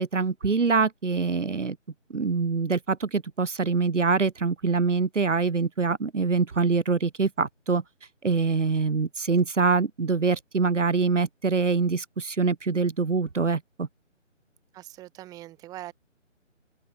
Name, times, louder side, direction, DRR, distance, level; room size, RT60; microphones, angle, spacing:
voice 1, 0.0-1.8 2.1-7.8 8.2-13.9, right 4 dB, 70° right, 1.3 m, -24 dB
voice 2, 14.7-15.9, right 15 dB, 10° right, 5.9 m, -42 dB
open air
figure-of-eight pair, 155°, 38 cm